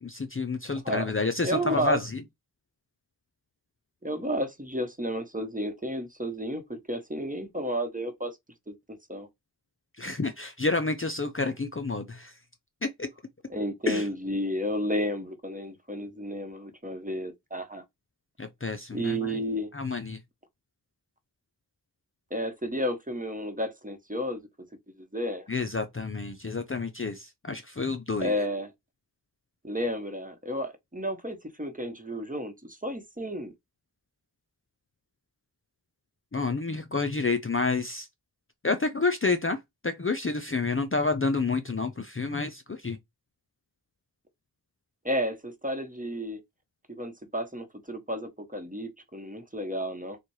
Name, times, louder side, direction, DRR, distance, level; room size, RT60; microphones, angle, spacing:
voice 1, 0.0-2.2 10.0-12.4 12.8-13.1 13.9-14.1 18.4-19.4 19.7-20.2 25.5-28.3 36.3-38.1 38.6-43.0, left 3 dB, 30° left, 0.6 m, -29 dB
voice 2, 1.4-2.0 4.0-8.4 8.7-8.8 9.1-9.3 13.5-17.8 18.9-19.7 22.3-24.4 25.0-25.5 28.2-28.7 29.6-33.5 45.0-46.4 46.9-50.2, equal, 20° right, 1.1 m, -32 dB
4.1 x 2.4 x 4.7 m
wide cardioid pair, 45°, 42 cm